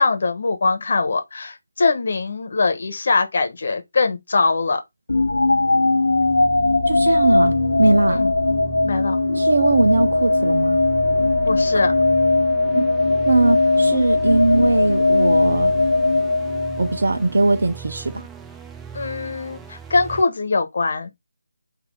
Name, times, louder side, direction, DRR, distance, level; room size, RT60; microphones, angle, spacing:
voice 1, 0.0-4.8 8.1-8.3 8.8-9.2 11.4-11.9 18.9-21.1, left 3 dB, 55° left, 1.1 m, -22 dB
sound 1, 5.1-17.2, left 2 dB, 80° left, 0.4 m, -19 dB
sound 2, 6.1-20.2, right 7 dB, 5° right, 0.3 m, -39 dB
voice 2, 6.9-8.2 9.3-10.8 11.7-12.0 12.7-12.9 13.3-15.7 16.8-18.2, right 2 dB, 65° right, 0.7 m, -20 dB
4.0 x 2.8 x 3.8 m
figure-of-eight pair, 155°, 0 cm